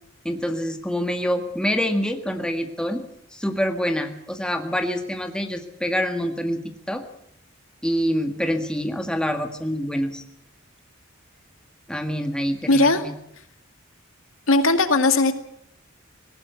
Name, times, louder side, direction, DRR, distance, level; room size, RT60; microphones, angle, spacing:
voice 1, 0.2-3.0 3.3-6.6 6.9-7.0 7.8-10.2 11.9-13.1, equal, 5° left, 5 dB, 1.8 m, -26 dB
voice 2, 12.7-13.0 14.5-15.3, left 2 dB, 85° left, 8 dB, 2.1 m, -18 dB
19.5 x 18.5 x 8.2 m, 0.72 s
head